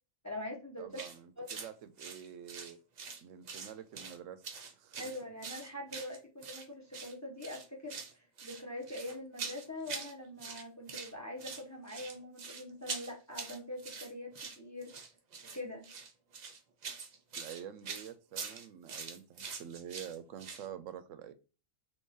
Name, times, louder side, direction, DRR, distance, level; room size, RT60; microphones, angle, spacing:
voice 1, 0.2-1.0 1.4-1.5 5.0-14.9 15.5-15.9, left 1 dB, 15° left, 0.7 m, -43 dB
voice 2, 0.8-2.8 3.2-4.4 4.7-5.1 17.4-21.3, right 9 dB, 90° right, 1.0 m, -47 dB
sound 1, 0.9-1.2 1.5-1.7 2.0-3.2 3.5-4.2 4.4-6.6 6.9-7.1 7.4-8.1 8.4-10.1 10.4-11.1 11.4-20.7, right 5 dB, 50° right, 0.5 m, -44 dB
3.7 x 2.9 x 2.6 m
omnidirectional pair, 1.3 m